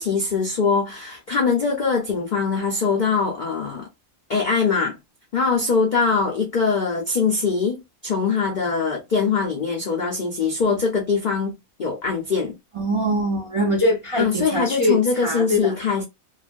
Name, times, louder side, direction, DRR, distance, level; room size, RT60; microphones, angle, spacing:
voice 1, 0.0-3.9 4.3-5.0 5.3-11.5 11.8-12.5 14.2-16.0, left 5 dB, 80° left, 0.4 m, -22 dB
voice 2, 12.7-15.7, equal, 55° right, 0.3 m, -23 dB
2.4 x 2.1 x 2.4 m
omnidirectional pair, 1.5 m